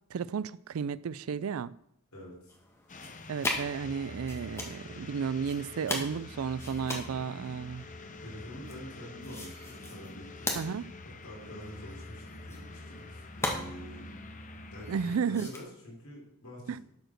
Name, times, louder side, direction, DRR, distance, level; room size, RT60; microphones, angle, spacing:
voice 1, 0.1-1.7 3.3-7.9 10.6-10.8 14.9-15.5 16.7-16.8, right 6 dB, 70° right, 0.4 m, -33 dB
voice 2, 2.1-2.5 8.2-10.5 11.0-14.0 14.7-16.8, equal, 80° left, 5.0 m, -47 dB
sound 1, 2.5-15.6, left 2 dB, 10° left, 1.5 m, -41 dB
sound 2, 2.9-15.2, left 2 dB, 35° left, 0.8 m, -46 dB
11.5 x 5.1 x 6.4 m
head